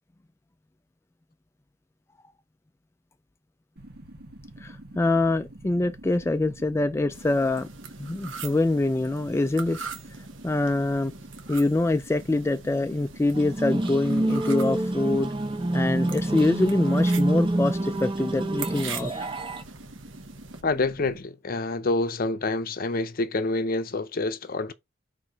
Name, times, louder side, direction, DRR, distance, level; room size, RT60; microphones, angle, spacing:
sound 1, 3.8-21.2, right 1 dB, 55° right, 1.4 m, -46 dB
voice 1, 4.6-7.7 8.0-9.8 10.4-11.1 11.5-15.3 15.7-19.3, left 2 dB, 15° left, 0.3 m, -25 dB
sound 2, 7.1-20.6, right 6 dB, 75° right, 1.2 m, -43 dB
sound 3, 13.3-19.6, right 1 dB, 25° right, 0.9 m, -26 dB
voice 2, 20.6-24.7, left 3 dB, 45° left, 0.6 m, -27 dB
4.7 x 4.2 x 5.1 m
head